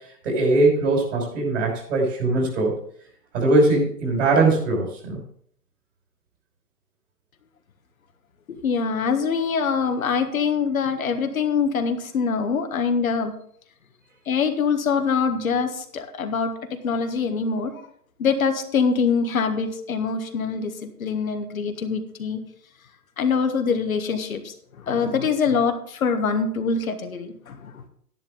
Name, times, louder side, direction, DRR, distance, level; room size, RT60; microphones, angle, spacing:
voice 1, 0.2-2.8 3.3-5.2, right 2 dB, 50° right, 0 dB, 5.9 m, -21 dB
voice 2, 8.6-13.3 14.3-17.7 18.2-22.4 23.2-27.8, left 5 dB, 55° left, 6 dB, 1.5 m, -24 dB
11.5 x 10.5 x 3.7 m, 0.64 s
hypercardioid pair, 145°, 48 cm